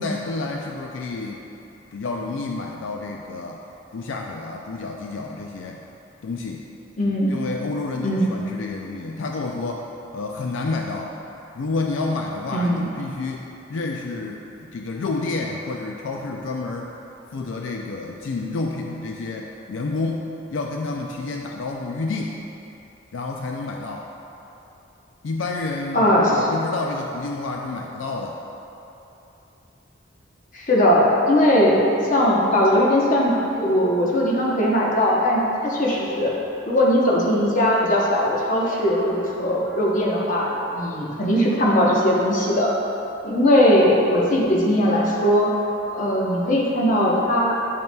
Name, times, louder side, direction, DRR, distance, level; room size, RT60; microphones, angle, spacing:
voice 1, 0.0-1.4 1.9-3.6 3.9-5.8 6.2-6.6 7.3-11.1 11.5-16.9 17.3-22.4 23.1-24.1 25.2-28.4, left 3 dB, 80° left, 1 dB, 0.4 m, -29 dB
voice 2, 7.0-7.4 8.0-8.3 12.5-12.9 25.9-26.3 30.5-36.3 36.7-42.7 43.2-45.6 45.9-47.5, equal, 40° left, -4 dB, 0.9 m, -19 dB
9.0 x 5.4 x 2.2 m, 3.0 s
head